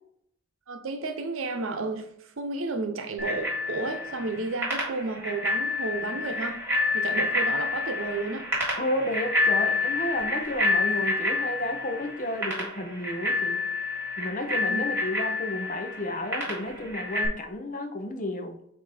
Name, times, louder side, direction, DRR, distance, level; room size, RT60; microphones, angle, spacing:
voice 1, 0.7-6.6 6.9-8.5 14.7-14.9, right 3 dB, 80° right, 0.7 m, -32 dB
Bicycle bell, 3.2-17.3, left 3 dB, 10° right, 2.1 m, -29 dB
voice 2, 8.8-13.6 14.2-18.6, left 1 dB, 40° left, 0.7 m, -32 dB
8.2 x 2.7 x 4.2 m
head